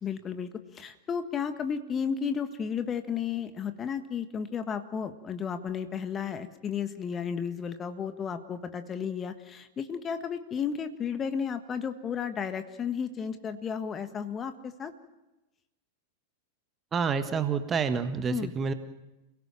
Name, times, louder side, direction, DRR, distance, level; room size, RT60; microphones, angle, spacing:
voice 1, 0.0-14.9 18.3-18.5, left 7 dB, 25° left, 9 dB, 1.6 m, -33 dB
voice 2, 16.9-18.7, right 6 dB, 25° right, 10 dB, 1.5 m, -28 dB
29.0 x 17.5 x 7.6 m, 1.0 s
figure-of-eight pair, 90°, 0 cm